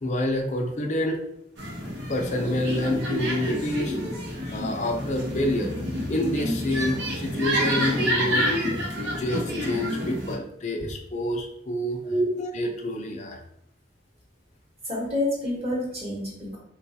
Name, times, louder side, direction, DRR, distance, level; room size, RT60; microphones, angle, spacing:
voice 1, 0.0-1.2 2.1-4.0 4.5-5.7 6.1-8.4 9.2-12.0 12.4-13.4, left 1 dB, 40° left, 2 dB, 0.5 m, -27 dB
sound 1, 1.6-10.4, equal, 70° right, 0.9 m, -28 dB
voice 2, 14.9-16.6, left 1 dB, 30° right, -4 dB, 1.0 m, -27 dB
3.9 x 2.2 x 2.7 m, 0.75 s
head